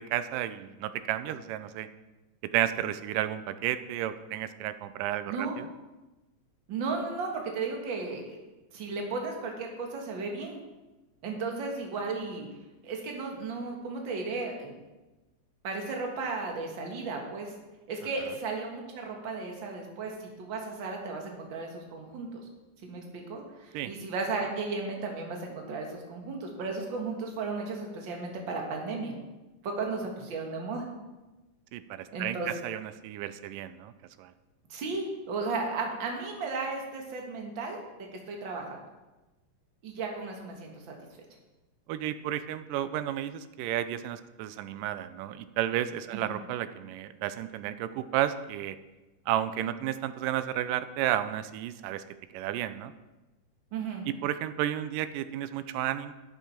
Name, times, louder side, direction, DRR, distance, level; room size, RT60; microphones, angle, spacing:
voice 1, 0.0-1.9 2.5-5.7 23.7-23.9 31.7-33.9 34.2-34.3 41.9-48.8 49.3-52.0 52.3-52.9 54.1-56.1, right 12 dB, 85° right, 13 dB, 2.2 m, -32 dB
voice 2, 6.7-8.4 8.7-10.6 11.2-12.5 12.8-14.7 15.6-17.5 17.9-22.4 22.8-29.1 29.6-30.8 32.1-32.5 34.7-37.8 38.3-38.8 39.8-40.9 46.1-46.4 53.7-54.0, right 4 dB, 45° right, 1 dB, 1.8 m, -35 dB
11.5 x 8.4 x 4.4 m, 1.1 s
omnidirectional pair, 3.8 m